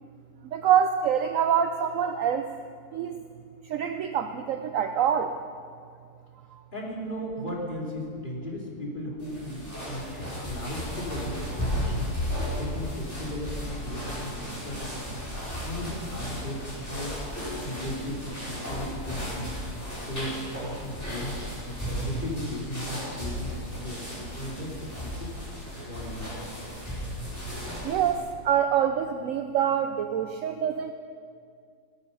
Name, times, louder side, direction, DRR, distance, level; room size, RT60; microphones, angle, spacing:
voice 1, 0.5-2.5 2.9-3.3 3.6-5.4 6.5-6.6 27.8-30.9, right 8 dB, 65° right, 8 dB, 1.0 m, -25 dB
voice 2, 6.7-12.1 12.6-15.3 15.6-17.2 17.5-19.6 19.9-21.4 21.7-25.3 25.8-26.3, left 1 dB, 30° left, -4 dB, 3.5 m, -36 dB
sound 1, 9.2-28.2, equal, 10° left, 5.3 m, -35 dB
19.0 x 13.0 x 5.5 m, 2.2 s
omnidirectional pair, 1.6 m